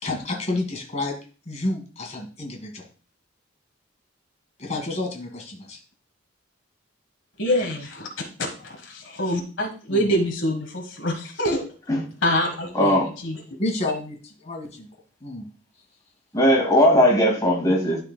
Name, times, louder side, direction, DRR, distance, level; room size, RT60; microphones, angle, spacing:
voice 1, 0.0-1.2 1.5-2.9 4.6-5.8 9.9-10.1 12.8-13.0 13.6-14.9 15.2-15.5, left 2 dB, 35° left, 2 dB, 1.8 m, -30 dB
voice 2, 7.4-11.7 12.2-13.4, equal, 70° left, 2 dB, 1.4 m, -26 dB
voice 3, 12.7-13.1 16.3-18.0, equal, 20° left, -1 dB, 2.1 m, -18 dB
12.5 x 4.5 x 2.2 m, 0.37 s
head